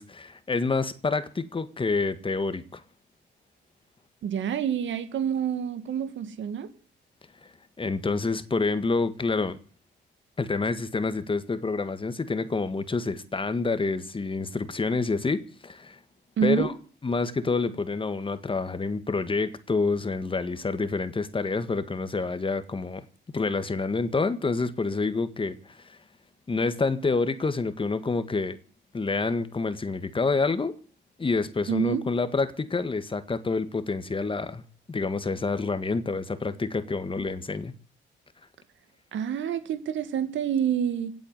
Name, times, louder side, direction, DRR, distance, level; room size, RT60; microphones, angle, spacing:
voice 1, 0.0-2.8 7.4-9.6 10.4-16.0 16.4-16.7 17.0-23.1 23.3-26.0 26.5-28.6 28.9-30.8 31.2-34.6 34.9-37.7, left 3 dB, 25° left, 1.8 m, -28 dB
voice 2, 4.2-6.7 16.4-16.7 31.7-32.0 39.1-41.1, right 8 dB, 70° right, 2.3 m, -27 dB
17.0 x 8.2 x 9.8 m
cardioid pair, 90°, 20 cm